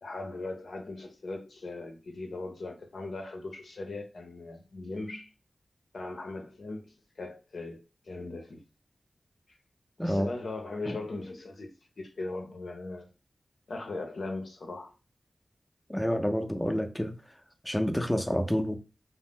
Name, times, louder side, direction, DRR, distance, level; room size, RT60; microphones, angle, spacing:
voice 1, 0.0-5.3 5.9-8.6 10.0-13.1 13.7-14.9, left 2 dB, 75° left, 0.6 m, -39 dB
voice 2, 10.0-10.3 10.9-11.0 15.9-17.1 17.6-18.8, equal, 10° left, 0.5 m, -28 dB
2.5 x 2.0 x 3.5 m
cardioid pair, 40°, 0 cm